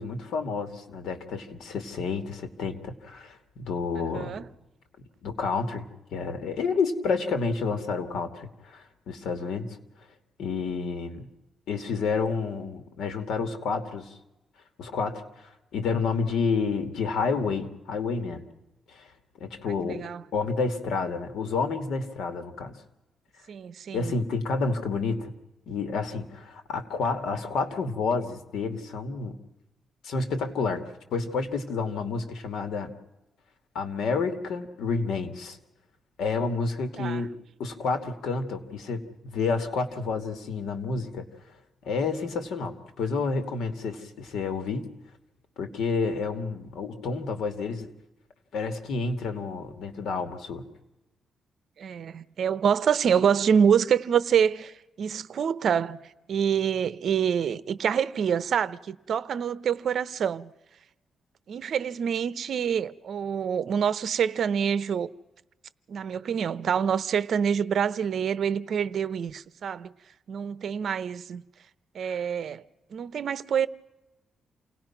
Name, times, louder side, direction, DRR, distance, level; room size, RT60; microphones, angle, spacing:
voice 1, 0.0-4.4 5.2-9.8 10.4-11.3 11.7-14.1 14.8-18.4 18.9-19.1 19.3-22.8 23.9-25.3 25.7-29.4 30.0-30.8 31.1-32.9 33.7-35.6 36.2-37.3 37.6-41.3 41.8-44.9 45.6-47.9 48.5-50.7, left 4 dB, 85° left, 2.5 m, -30 dB
voice 2, 4.1-4.5 19.9-20.2 23.5-24.1 37.0-37.2 51.8-56.0 56.3-60.5 61.5-65.1 65.9-69.9 70.3-71.4 71.9-72.6 72.9-73.7, right 7 dB, 60° right, 0.9 m, -26 dB
28.5 x 19.0 x 6.0 m
cardioid pair, 130°, 0 cm